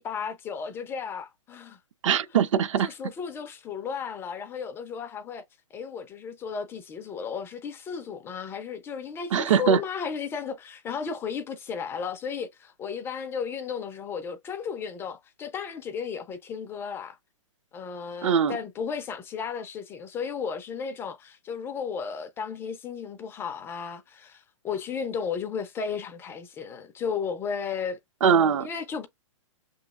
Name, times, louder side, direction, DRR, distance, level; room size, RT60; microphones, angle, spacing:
voice 1, 0.0-1.8 2.8-5.4 5.7-17.2 17.7-28.0 28.6-29.1, left 6 dB, 15° left, 0.4 m, -34 dB
voice 2, 2.0-2.9 9.3-9.8 18.2-18.6 28.2-28.7, right 7 dB, 70° right, 0.7 m, -21 dB
6.1 x 3.0 x 2.3 m
hypercardioid pair, 145°, 17 cm